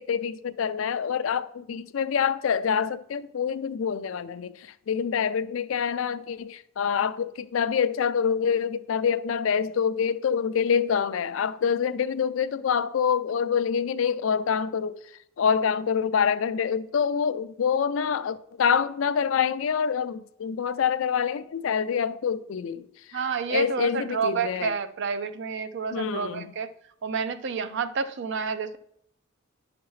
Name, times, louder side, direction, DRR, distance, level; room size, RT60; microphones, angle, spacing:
voice 1, 0.0-15.0 15.4-23.2 23.5-24.7 25.9-26.5, left 7 dB, 70° left, 0.4 m, -26 dB
voice 2, 23.1-26.7 27.0-28.8, right 5 dB, 60° right, 0.5 m, -29 dB
10.0 x 5.8 x 3.1 m
head